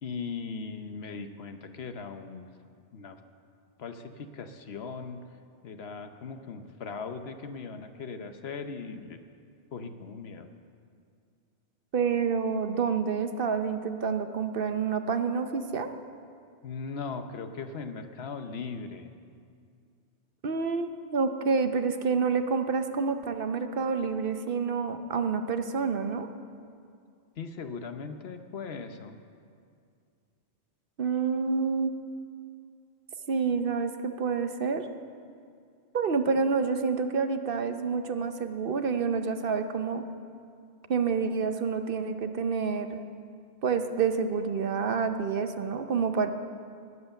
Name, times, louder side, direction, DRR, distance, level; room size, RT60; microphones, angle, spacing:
voice 1, 0.0-2.5 2.9-3.2 3.8-5.2 5.6-9.2 9.7-10.5 16.6-19.1 27.4-29.2 36.3-36.4, left 5 dB, 70° left, 8 dB, 1.1 m, -39 dB
voice 2, 11.9-15.9 20.4-26.3 31.0-31.9 33.3-34.9 35.9-40.0 40.9-43.0 43.6-46.3, right 5 dB, 60° right, 8 dB, 0.9 m, -28 dB
19.0 x 7.9 x 7.0 m, 2.3 s
omnidirectional pair, 1.1 m